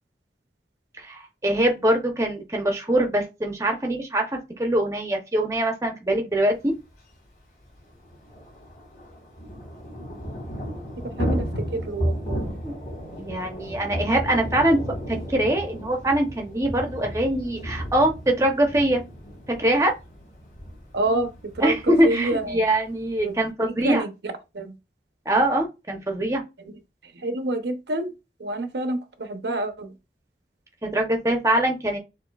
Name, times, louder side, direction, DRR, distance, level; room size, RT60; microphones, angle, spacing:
voice 1, 1.0-6.7 12.6-12.7 13.2-14.8 15.1-19.0 19.6-19.9 21.6-24.0 25.3-26.4 30.8-32.0, right 1 dB, 15° right, 0.7 m, -23 dB
Thunder / Rain, 6.9-7.0 7.2-7.3 7.6-23.5, equal, 45° left, 2.4 m, -34 dB
voice 2, 11.7-12.5 20.9-21.3 21.6-21.8 22.0-22.6 23.2-23.3 23.7-24.1 24.5-24.7 27.2-28.1 28.4-29.9, right 2 dB, 75° right, 0.7 m, -27 dB
6.6 x 2.6 x 2.3 m
head